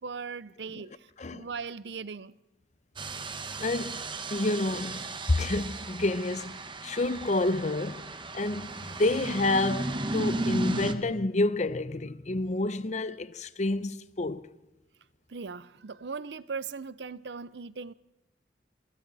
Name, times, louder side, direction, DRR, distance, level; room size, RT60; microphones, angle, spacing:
voice 1, 0.0-2.3 15.3-17.9, right 5 dB, 75° right, 0.6 m, -39 dB
sound 1, 3.0-10.9, right 2 dB, 30° right, 1.2 m, -35 dB
voice 2, 3.6-14.5, left 2 dB, 40° left, 0.7 m, -29 dB
sound 2, 8.4-11.2, equal, 45° right, 3.6 m, -53 dB
27.0 x 25.0 x 4.1 m
head